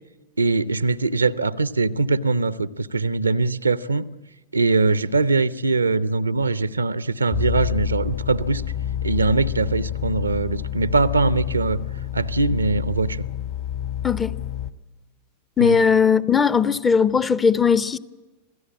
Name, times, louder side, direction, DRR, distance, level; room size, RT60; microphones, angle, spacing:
voice 1, 0.4-4.1 4.5-8.6 9.0-11.8 12.1-13.2 15.6-15.8, right 3 dB, 80° right, 0.7 m, -22 dB
sound 1, 7.3-14.7, left 11 dB, 45° left, 1.2 m, -29 dB
voice 2, 14.0-14.4 15.6-18.0, left 6 dB, 15° left, 0.7 m, -18 dB
27.0 x 17.0 x 8.9 m
figure-of-eight pair, 90°, 0 cm